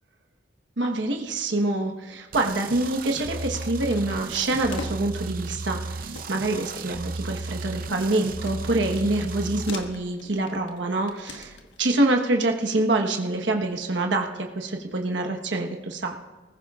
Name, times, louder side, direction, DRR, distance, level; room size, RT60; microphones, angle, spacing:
voice 1, 0.8-16.2, right 2 dB, 75° right, 3 dB, 1.2 m, -26 dB
sound 1, 2.3-2.6 3.3-5.3 5.7-5.8 6.2-11.9, left 3 dB, 80° left, 1.3 m, -44 dB
sound 2, 2.3-9.7, right 3 dB, 50° right, 0.6 m, -34 dB
20.0 x 15.0 x 2.4 m, 1.3 s
head